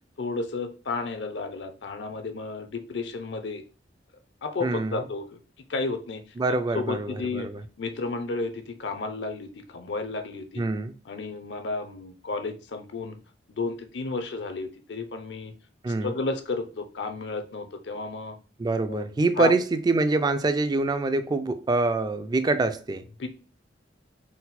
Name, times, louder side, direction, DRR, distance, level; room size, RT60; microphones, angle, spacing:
voice 1, 0.2-3.6 4.4-5.4 5.7-6.2 6.5-7.5 7.8-10.6 11.1-13.2 13.6-15.5 16.0-18.4 18.9-19.1 19.4-19.5 23.2-23.3, left 3 dB, 70° left, 0.6 m, -32 dB
voice 2, 4.6-5.0 6.4-7.6 10.6-10.9 15.8-16.2 18.6-23.0, right 3 dB, 25° right, 0.3 m, -25 dB
4.1 x 2.1 x 4.0 m
head